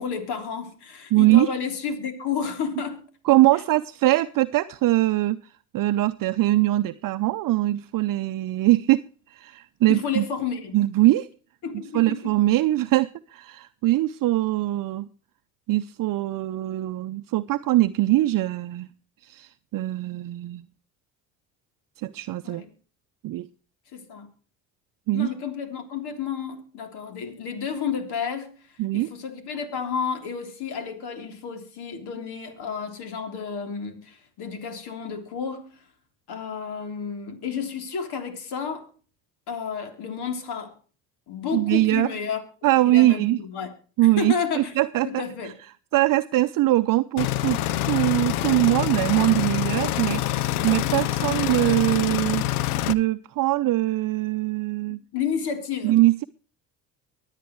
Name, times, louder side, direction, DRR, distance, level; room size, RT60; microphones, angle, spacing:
voice 1, 0.0-3.1 9.9-10.8 11.6-12.2 22.4-22.7 23.9-24.3 25.1-28.6 28.9-35.8 36.3-38.9 39.5-40.7 41.3-42.4 42.9-43.7 44.0-44.7 45.0-45.5 55.1-56.0, left 6 dB, 65° left, 3.5 m, -31 dB
voice 2, 1.1-1.5 3.3-5.4 5.7-9.0 9.3-10.2 10.7-11.3 11.9-15.1 15.7-18.9 19.2-20.6 22.0-22.6 23.2-23.5 25.1-25.3 28.8-29.1 41.5-42.1 42.6-43.4 44.0-45.2 45.9-52.5 52.9-55.0 55.8-56.2, right 17 dB, 50° right, 0.7 m, -22 dB
sound 1, 47.2-52.9, left 14 dB, 90° left, 0.7 m, -26 dB
23.5 x 9.1 x 3.1 m
hypercardioid pair, 65°, 43 cm